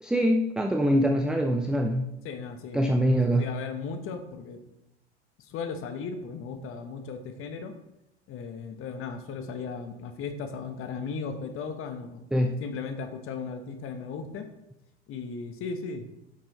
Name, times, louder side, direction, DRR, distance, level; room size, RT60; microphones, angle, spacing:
voice 1, 0.0-2.1 2.7-3.4 12.3-12.5, equal, ahead, 5 dB, 0.5 m, -24 dB
voice 2, 2.2-3.0 3.4-4.6 5.4-7.7 8.3-12.3 12.6-14.5 15.1-16.1, left 5 dB, 40° left, 7 dB, 1.3 m, -36 dB
9.6 x 6.2 x 4.1 m, 0.91 s
hypercardioid pair, 85°, 34 cm